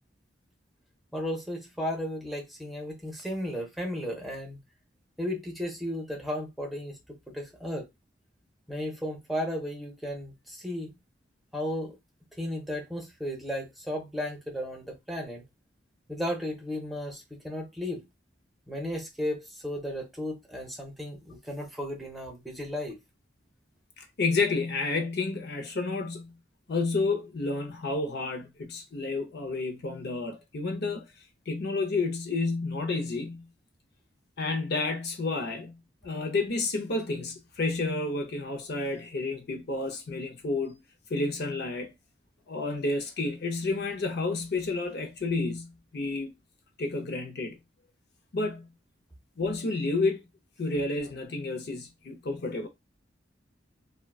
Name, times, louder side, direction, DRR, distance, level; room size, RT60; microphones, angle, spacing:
voice 1, 1.1-4.6 5.2-7.0 7.3-7.9 8.7-10.9 11.5-12.0 12.4-15.4 16.1-18.1 18.7-23.0, equal, ahead, 0.7 m, -34 dB
voice 2, 24.0-26.3 26.7-31.1 31.5-33.5 34.4-40.8 41.1-41.9 42.5-46.3 46.8-47.6 48.3-48.7 49.4-50.2 50.6-52.7, left 3 dB, 60° left, 0.6 m, -30 dB
3.6 x 2.1 x 2.3 m
head